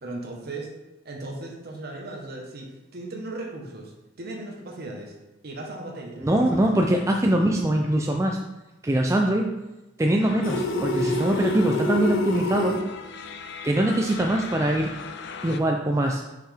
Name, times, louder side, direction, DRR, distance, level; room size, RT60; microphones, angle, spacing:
voice 1, 0.0-0.7 1.0-5.2 5.4-6.8, right 2 dB, 50° right, 0 dB, 1.2 m, -37 dB
voice 2, 6.2-8.4 8.8-9.5 10.0-12.8 13.6-14.9 15.4-16.2, right 1 dB, 15° right, 1 dB, 0.3 m, -22 dB
sound 1, 10.2-15.6, left 5 dB, 55° left, 0.5 m, -39 dB
sound 2, 10.4-12.8, left 2 dB, 80° left, 0.8 m, -26 dB
5.6 x 5.6 x 3.4 m, 1.0 s
head